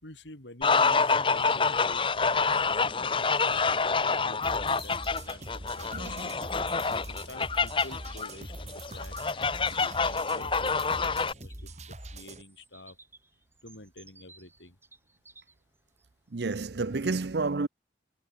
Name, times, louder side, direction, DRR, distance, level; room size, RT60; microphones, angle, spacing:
voice 1, 0.0-2.0 2.4-6.4 6.7-9.7 10.0-13.0 13.6-14.8, left 2 dB, 80° left, 5.3 m, -49 dB
sound 1, 0.6-11.3, left 4 dB, 30° left, 0.8 m, -27 dB
Bird vocalization bird call bird song, 3.8-16.5, right 3 dB, 15° right, 4.4 m, -60 dB
sound 2, 4.4-12.4, right 1 dB, 40° right, 4.2 m, -43 dB
voice 2, 5.9-6.3 9.7-9.8 16.3-17.7, right 3 dB, 65° right, 0.7 m, -30 dB
head